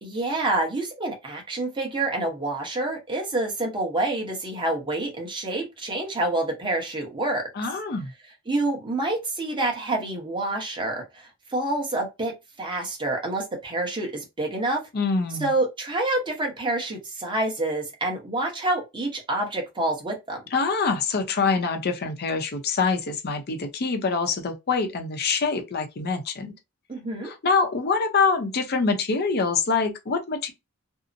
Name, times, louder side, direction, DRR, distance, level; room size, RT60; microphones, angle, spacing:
voice 1, 0.0-7.5 8.5-12.3 12.6-14.8 15.4-20.4 26.9-27.3, right 2 dB, 25° right, 0.9 m, -27 dB
voice 2, 7.6-8.1 14.9-15.5 20.5-26.5 27.2-30.5, left 4 dB, 50° left, 0.6 m, -25 dB
2.7 x 2.0 x 2.5 m
head